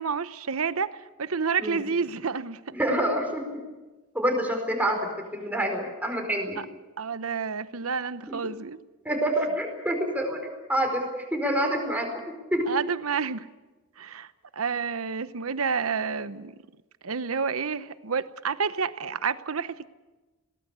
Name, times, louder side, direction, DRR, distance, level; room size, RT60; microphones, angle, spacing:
voice 1, 0.0-2.6 6.6-6.7 7.0-8.8 12.7-13.5 14.0-14.3 14.5-16.6 17.0-19.9, right 5 dB, 90° right, 14 dB, 0.9 m, -29 dB
voice 2, 2.7-3.6 4.1-6.6 8.3-8.4 9.0-12.2 12.5-12.7, right 1 dB, 10° right, 3 dB, 4.7 m, -27 dB
21.5 x 18.5 x 8.2 m, 1.2 s
head